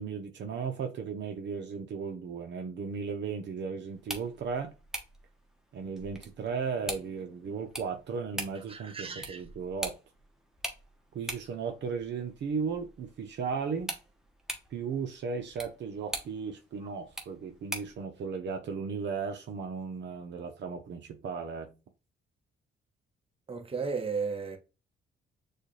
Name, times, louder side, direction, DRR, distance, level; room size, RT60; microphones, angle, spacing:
voice 1, 0.0-4.7 5.7-9.9 11.1-13.9 14.7-21.7, right 5 dB, 65° right, 0.8 m, -36 dB
sound 1, 3.9-18.0, right 1 dB, ahead, 1.2 m, -43 dB
voice 2, 8.7-9.4 23.5-24.6, right 5 dB, 30° right, 1.1 m, -34 dB
6.4 x 2.4 x 3.2 m
cardioid pair, 90°, 20 cm